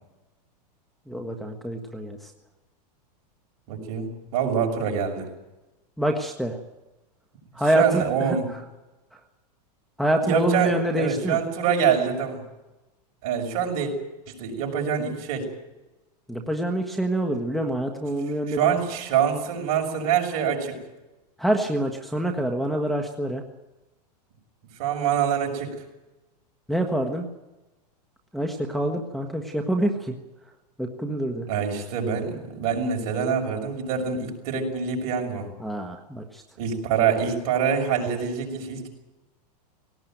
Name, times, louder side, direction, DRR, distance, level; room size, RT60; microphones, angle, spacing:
voice 1, 1.1-2.3 6.0-6.6 7.5-8.4 10.0-11.4 16.3-18.6 21.4-23.4 26.7-27.3 28.3-30.2 30.8-31.5 35.6-36.4, right 1 dB, ahead, 1 dB, 1.4 m, -26 dB
voice 2, 3.7-5.3 7.7-8.5 10.2-12.4 13.2-13.9 14.3-15.5 18.5-20.8 24.8-25.7 31.5-35.5 36.6-38.9, right 7 dB, 50° right, 3 dB, 6.4 m, -25 dB
19.0 x 18.0 x 9.2 m, 1.1 s
supercardioid pair, 145°, 21 cm